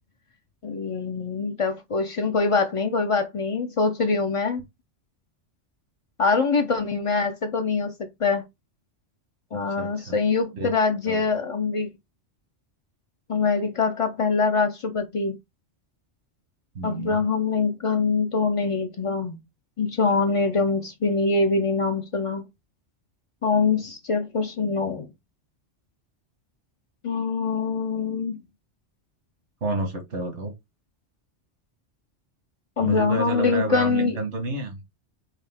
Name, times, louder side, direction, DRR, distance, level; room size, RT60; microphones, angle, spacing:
voice 1, 0.6-4.6 6.2-7.9 8.2-8.4 9.5-11.9 13.3-15.4 16.8-19.4 19.8-22.4 23.4-25.1 27.0-28.4 32.8-34.2, left 4 dB, 50° left, 0.4 m, -24 dB
voice 2, 9.8-10.2 10.5-10.7 11.1-11.2 16.7-17.2 29.6-30.5 32.8-34.8, right 2 dB, 80° right, 1.6 m, -29 dB
4.9 x 2.7 x 3.4 m
omnidirectional pair, 1.2 m